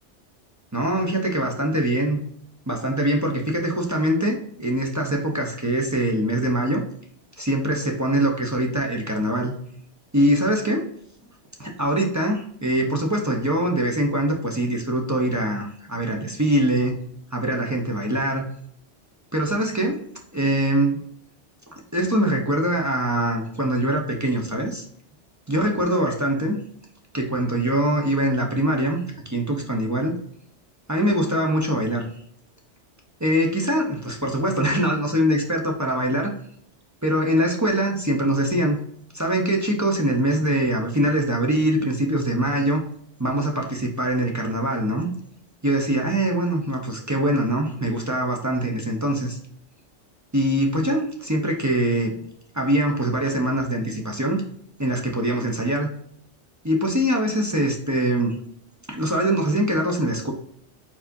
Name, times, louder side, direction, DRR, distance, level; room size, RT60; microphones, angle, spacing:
voice 1, 0.7-2.2 2.7-6.8 7.4-9.5 10.1-10.9 11.6-17.0 17.3-18.4 19.3-20.0 20.3-21.0 21.9-24.8 25.5-26.6 27.1-29.0 29.3-30.2 30.9-32.1 33.2-36.3 37.0-38.8 39.1-42.8 43.2-45.1 45.6-49.4 50.3-52.1 52.5-54.4 54.8-55.9 56.6-58.4 58.9-60.3, right 1 dB, 20° right, 1 dB, 0.6 m, -23 dB
4.6 x 4.2 x 2.7 m, 0.66 s
omnidirectional pair, 1.2 m